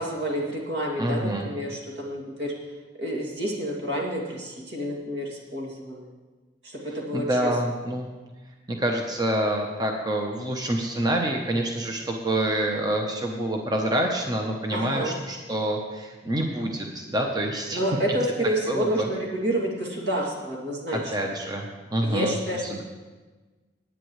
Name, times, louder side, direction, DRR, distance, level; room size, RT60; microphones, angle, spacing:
voice 1, 0.0-2.5 3.0-6.1 6.6-7.5 14.7-15.2 17.7-21.3 22.0-22.8, equal, 75° right, -2 dB, 2.5 m, -29 dB
voice 2, 1.0-1.5 7.1-8.1 8.7-17.8 18.7-19.1 21.1-21.6 21.9-22.3 22.7-22.8, right 1 dB, 25° right, 1 dB, 0.9 m, -27 dB
18.5 x 9.0 x 3.2 m, 1.3 s
head